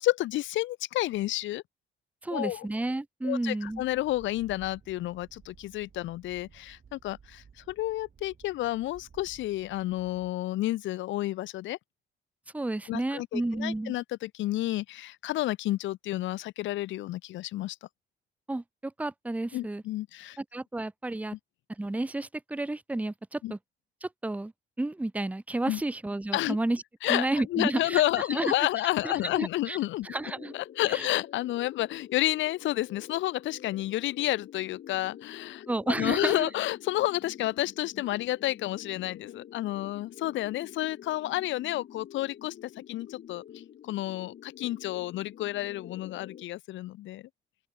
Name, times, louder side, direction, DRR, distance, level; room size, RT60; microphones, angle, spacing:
voice 1, 0.0-1.6 2.3-2.7 3.2-11.8 12.9-17.8 19.5-20.4 23.4-23.5 25.7-25.8 26.3-26.6 27.0-30.1 30.5-43.4 43.8-47.2, left 15 dB, 75° left, 0.5 m, -30 dB
voice 2, 2.2-3.8 12.5-13.9 18.5-19.8 20.4-21.4 21.8-23.6 24.0-24.5 24.8-28.0 28.3-28.5 29.0-29.8 30.0-30.5 30.9-31.1 35.7-36.5, right 2 dB, 5° right, 0.7 m, -31 dB
sound 1, 3.7-10.3, right 6 dB, 45° right, 6.4 m, -56 dB
sound 2, 30.0-46.4, left 10 dB, 55° left, 1.2 m, -48 dB
open air
cardioid pair, 90°, 20 cm